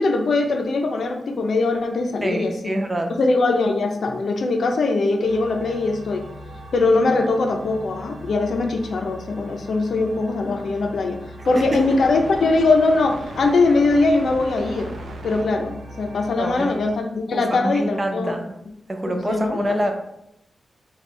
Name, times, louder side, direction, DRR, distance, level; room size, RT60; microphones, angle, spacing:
voice 1, 0.0-2.8 3.1-6.2 6.7-11.2 11.5-14.9 15.2-18.3 19.1-19.6, left 3 dB, 75° left, 4 dB, 0.5 m, -21 dB
voice 2, 2.2-3.2 11.6-11.8 16.4-16.7 17.3-18.5 18.9-19.9, right 1 dB, 20° right, 4 dB, 0.5 m, -25 dB
sound 1, 5.2-17.0, right 1 dB, 80° right, 0.5 m, -38 dB
3.2 x 2.3 x 4.2 m, 0.80 s
wide cardioid pair, 120°, 0 cm